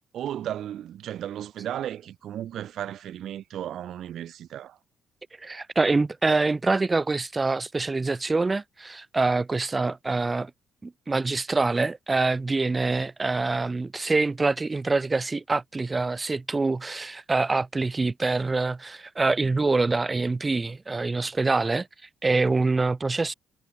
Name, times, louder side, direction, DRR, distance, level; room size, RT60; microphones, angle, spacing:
voice 1, 0.1-4.8, right 11 dB, 65° right, 0.6 m, -34 dB
voice 2, 5.4-10.5 10.8-21.9 22.2-23.3, right 3 dB, 20° right, 0.5 m, -25 dB
cardioid pair, 130°, 0 cm